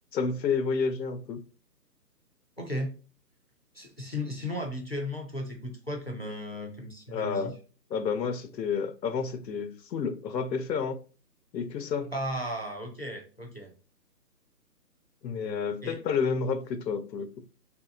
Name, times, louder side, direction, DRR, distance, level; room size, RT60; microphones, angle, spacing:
voice 1, 0.1-1.4 7.1-7.5 7.9-11.0 11.5-12.1 15.2-17.4, left 5 dB, 80° left, 0.7 m, -30 dB
voice 2, 2.6-2.9 3.7-7.5 12.1-13.7 15.8-16.0, left 1 dB, 40° left, 0.4 m, -35 dB
3.1 x 2.7 x 2.4 m
hypercardioid pair, 175°, 49 cm